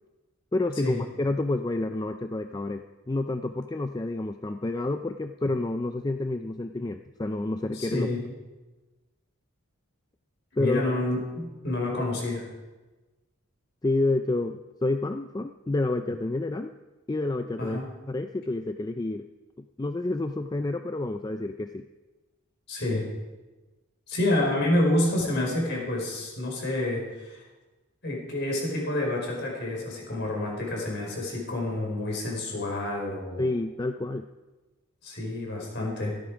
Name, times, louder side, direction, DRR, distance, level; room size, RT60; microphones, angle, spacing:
voice 1, 0.5-8.1 10.6-10.8 11.9-12.0 13.8-16.7 17.1-17.8 18.1-19.3 19.8-21.8 33.4-34.3, left 2 dB, 20° left, 7 dB, 0.4 m, -29 dB
voice 2, 7.7-8.2 10.6-12.5 17.6-17.9 22.7-23.1 24.1-27.4 28.0-33.4 35.0-36.1, left 1 dB, 50° left, -1 dB, 4.8 m, -28 dB
16.0 x 13.5 x 4.9 m, 1.2 s
head